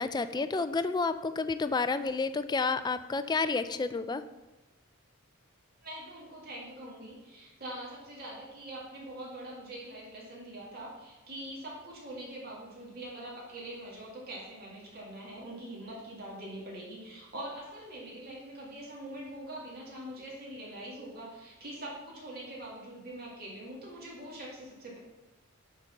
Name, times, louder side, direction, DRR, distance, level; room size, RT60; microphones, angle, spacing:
voice 1, 0.0-4.2, left 4 dB, 20° left, 12 dB, 0.3 m, -30 dB
voice 2, 5.8-25.0, right 1 dB, 45° right, -5 dB, 2.3 m, -43 dB
8.8 x 4.0 x 5.9 m, 1.1 s
head